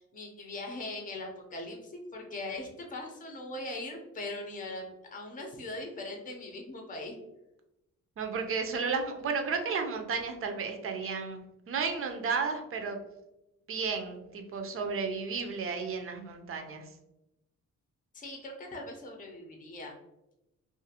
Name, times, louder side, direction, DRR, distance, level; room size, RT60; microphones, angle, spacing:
voice 1, 0.0-7.1 18.1-19.9, left 2 dB, 25° left, 2 dB, 0.7 m, -40 dB
voice 2, 8.2-13.0 13.7-16.9, right 5 dB, 45° right, 5 dB, 0.6 m, -33 dB
2.5 x 2.4 x 2.8 m, 0.88 s
cardioid pair, 90°, 30 cm